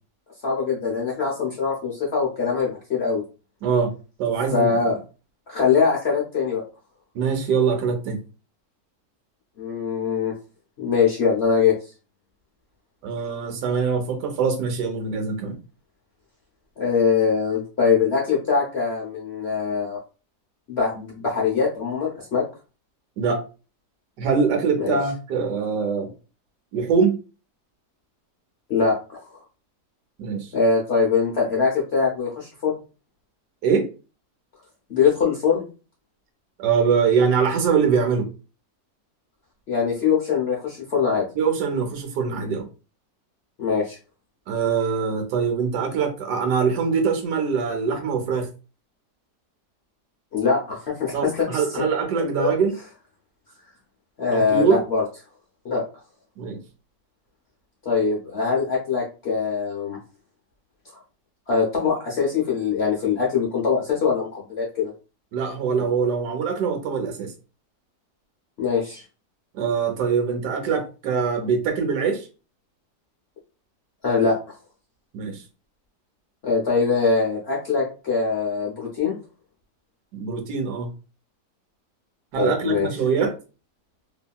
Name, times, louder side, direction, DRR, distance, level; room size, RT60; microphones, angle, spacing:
voice 1, 0.4-3.2 4.5-4.9 5.5-6.6 9.6-10.3 10.8-11.7 16.8-20.0 20.7-22.4 24.8-25.0 28.7-29.2 30.5-32.7 34.9-35.6 39.7-41.2 43.6-44.0 50.3-51.8 52.4-52.5 54.2-55.0 55.6-55.8 57.8-60.0 60.9-61.0 61.5-64.9 68.6-69.0 74.0-74.4 76.4-79.2 82.4-82.9, left 5 dB, 55° left, -4 dB, 0.7 m, -22 dB
voice 2, 3.6-3.9 4.2-4.7 7.1-8.2 13.0-15.6 23.2-23.4 24.2-26.1 26.7-27.2 30.2-30.5 33.6-33.9 36.6-38.3 41.4-42.7 44.5-48.5 51.1-52.7 54.3-54.8 56.4-56.6 65.3-67.3 69.5-72.3 75.1-75.4 80.1-80.9 82.3-83.3, right 5 dB, 75° right, 4 dB, 1.2 m, -23 dB
2.8 x 2.7 x 2.2 m, 0.33 s
omnidirectional pair, 1.8 m